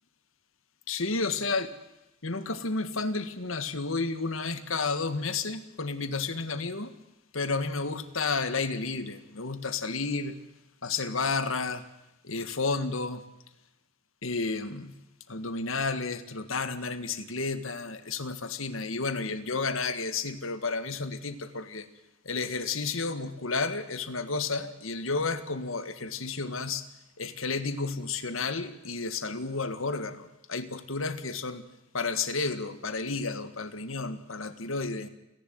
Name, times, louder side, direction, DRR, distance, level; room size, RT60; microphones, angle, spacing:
voice 1, 0.9-1.7 2.2-6.9 7.3-10.4 10.8-11.8 12.2-13.2 14.2-14.9 15.3-21.9 22.3-26.8 27.2-31.6 31.9-35.1, left 4 dB, 80° left, 12 dB, 1.8 m, -31 dB
29.5 x 11.5 x 9.4 m, 0.94 s
head